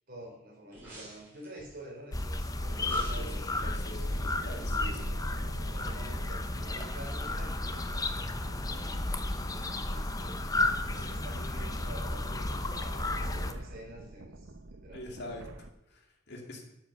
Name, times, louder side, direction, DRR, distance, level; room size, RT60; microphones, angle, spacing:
voice 1, 0.1-3.6 4.4-5.1 5.7-10.4 10.9-15.2, right 1 dB, 45° right, -2 dB, 4.0 m, -48 dB
sound 1, 0.7-1.8 2.7-5.2 5.5-5.6, right 1 dB, 10° right, 5.6 m, -52 dB
sound 2, 2.1-13.5, left 2 dB, 20° left, 0.7 m, -33 dB
voice 2, 2.8-5.1 5.5-5.7 10.9-11.4 13.2-13.5 14.9-15.4 15.9-16.6, left 1 dB, 55° left, 3 dB, 2.3 m, -45 dB
sound 3, 4.0-15.7, right 2 dB, 70° right, 0.8 m, -49 dB
12.5 x 7.7 x 5.9 m, 0.85 s
head